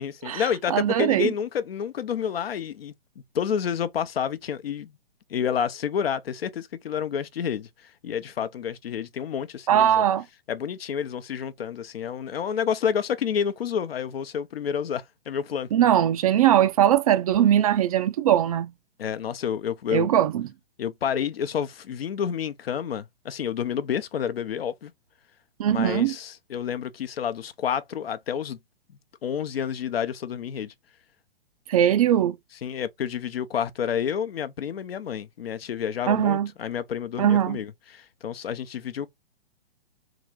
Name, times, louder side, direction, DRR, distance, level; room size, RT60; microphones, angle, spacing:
voice 1, 0.0-2.9 3.3-5.0 5.3-10.0 10.5-15.7 19.0-20.1 20.8-24.9 25.7-28.6 29.2-30.7 32.6-39.1, left 8 dB, 70° left, 0.7 m, -29 dB
voice 2, 0.7-1.3 9.7-10.2 15.7-18.7 19.9-20.5 25.6-26.1 31.7-32.4 36.1-36.5 37.2-37.6, right 10 dB, 35° right, 0.4 m, -20 dB
3.8 x 2.5 x 3.1 m
figure-of-eight pair, 120°, 31 cm